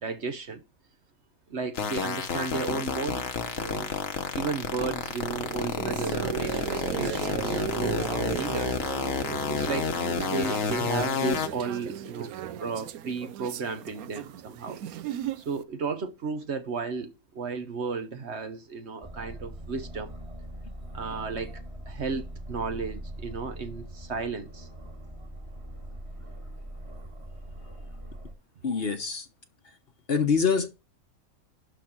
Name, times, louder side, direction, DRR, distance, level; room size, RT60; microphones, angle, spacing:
voice 1, 0.0-0.6 1.5-3.9 4.3-6.5 6.8-8.7 9.5-9.9 10.3-12.3 12.6-14.8 15.4-20.1 20.9-24.7, right 4 dB, 55° right, 1.1 m, -34 dB
sound 1, 1.7-11.5, left 6 dB, 65° left, 1.4 m, -30 dB
sound 2, 5.1-15.6, right 11 dB, 85° right, 1.1 m, -36 dB
Aircraft, 19.0-28.3, right 1 dB, 20° right, 1.8 m, -41 dB
voice 2, 28.6-29.3 30.1-30.7, left 5 dB, 45° left, 1.1 m, -25 dB
11.5 x 4.0 x 6.1 m
omnidirectional pair, 1.5 m